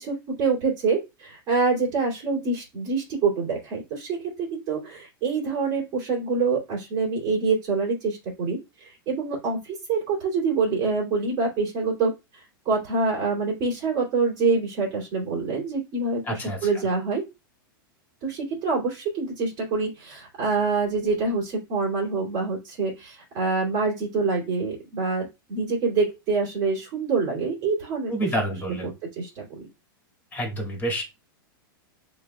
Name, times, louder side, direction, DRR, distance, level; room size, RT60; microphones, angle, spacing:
voice 1, 0.0-17.3 18.2-28.1 28.7-29.6, right 4 dB, 35° right, -3 dB, 2.5 m, -26 dB
voice 2, 16.3-16.6 28.1-28.9 30.3-31.0, right 1 dB, 15° left, 0 dB, 2.0 m, -28 dB
7.0 x 3.1 x 2.3 m, 0.25 s
supercardioid pair, 140°, 12 cm